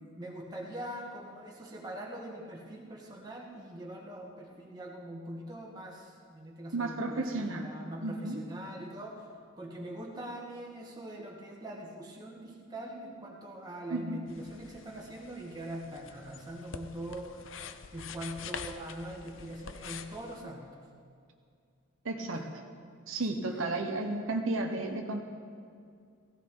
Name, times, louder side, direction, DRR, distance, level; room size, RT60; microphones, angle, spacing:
voice 1, 0.1-9.3 9.6-17.5 17.9-20.7 22.3-22.5 23.3-23.4, right 1 dB, 20° right, -2 dB, 2.0 m, -42 dB
voice 2, 6.7-7.7 8.0-8.4 13.9-14.2 22.0-22.5 23.1-25.2, right 2 dB, 85° right, 3 dB, 1.2 m, -33 dB
sound 1, 14.3-20.4, left 6 dB, 75° left, 0.6 m, -46 dB
16.5 x 16.0 x 4.0 m, 2.3 s
head